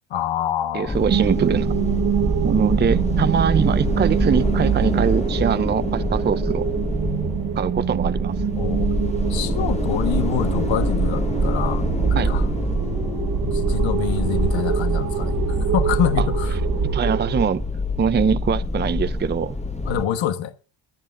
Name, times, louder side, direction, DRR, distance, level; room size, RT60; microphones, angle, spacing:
voice 1, 0.1-1.0 8.6-8.9 9.3-12.5 13.4-15.3 15.6-16.6 19.9-20.5, left 9 dB, 75° left, 1.4 m, -26 dB
voice 2, 0.7-1.7 2.4-6.7 7.6-8.3 12.2-12.3 16.2-16.3 16.9-17.6 18.0-19.6, right 6 dB, 25° right, 0.5 m, -23 dB
sound 1, 0.9-20.1, left 2 dB, 15° left, 1.3 m, -26 dB
sound 2, 1.1-17.4, right 7 dB, 45° right, 1.4 m, -24 dB
23.0 x 9.7 x 2.5 m
cardioid pair, 95°, 46 cm